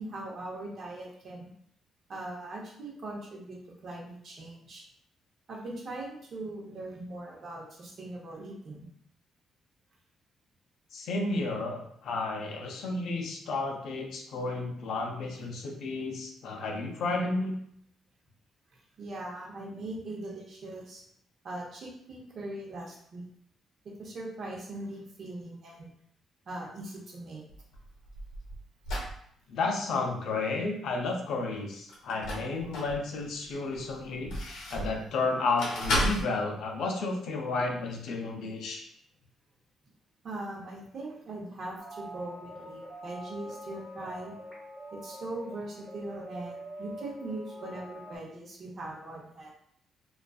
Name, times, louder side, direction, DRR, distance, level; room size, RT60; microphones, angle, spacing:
voice 1, 0.0-1.5 2.1-3.6 3.8-4.8 5.5-8.9 19.0-21.0 21.4-23.3 24.0-25.9 26.5-27.4 40.2-44.3 44.9-49.5, right 2 dB, 55° right, -2 dB, 0.7 m, -40 dB
voice 2, 10.9-17.5 29.5-38.8, left 3 dB, 70° left, 1 dB, 0.5 m, -32 dB
sound 1, 27.5-29.2 31.9-33.0 33.5-35.0 35.6-36.2, equal, 90° left, 0.9 m, -32 dB
sound 2, 41.8-48.2, equal, 10° left, 0.9 m, -44 dB
2.4 x 2.3 x 2.3 m, 0.68 s
cardioid pair, 90°, 0 cm